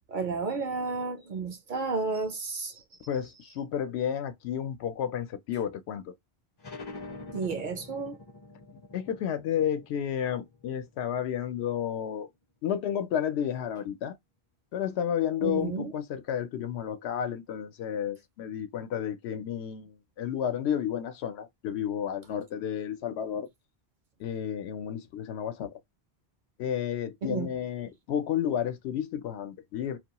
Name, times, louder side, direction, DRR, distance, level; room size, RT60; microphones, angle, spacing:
voice 1, 0.1-2.7 7.3-8.2 15.4-15.9 27.2-27.5, right 4 dB, 60° right, 0.6 m, -32 dB
voice 2, 3.1-6.1 8.9-12.3 12.6-14.2 14.7-23.5 24.2-25.7 26.6-30.0, left 9 dB, 80° left, 0.8 m, -31 dB
sound 1, 6.6-11.9, left 3 dB, 35° left, 0.4 m, -46 dB
2.3 x 2.2 x 2.8 m
omnidirectional pair, 1.1 m